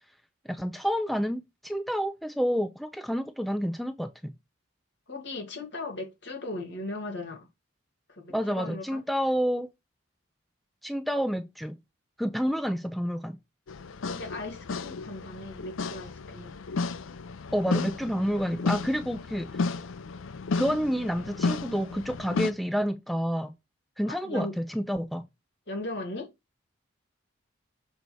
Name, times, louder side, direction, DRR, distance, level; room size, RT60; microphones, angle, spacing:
voice 1, 0.5-4.3 8.3-9.7 10.8-11.7 12.2-13.4 17.5-19.7 20.5-23.5 24.0-25.3, equal, ahead, 0.4 m, -29 dB
voice 2, 5.1-7.5 8.1-9.0 14.0-16.6 24.1-24.5 25.7-26.3, left 2 dB, 60° left, 2.3 m, -38 dB
sound 1, 13.7-22.5, left 4 dB, 80° left, 0.5 m, -33 dB
6.9 x 3.9 x 4.7 m
head